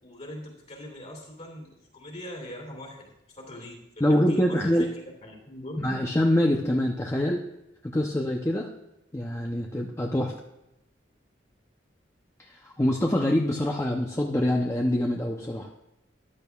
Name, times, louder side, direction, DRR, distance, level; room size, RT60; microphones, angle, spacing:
voice 1, 0.0-4.9 5.2-5.9, left 1 dB, 40° left, 0 dB, 2.8 m, -42 dB
voice 2, 4.0-4.9 5.8-7.4 7.8-8.7 9.1-10.3 12.4-15.7, left 1 dB, 15° left, 0 dB, 0.6 m, -25 dB
14.0 x 11.0 x 2.4 m, 0.91 s
head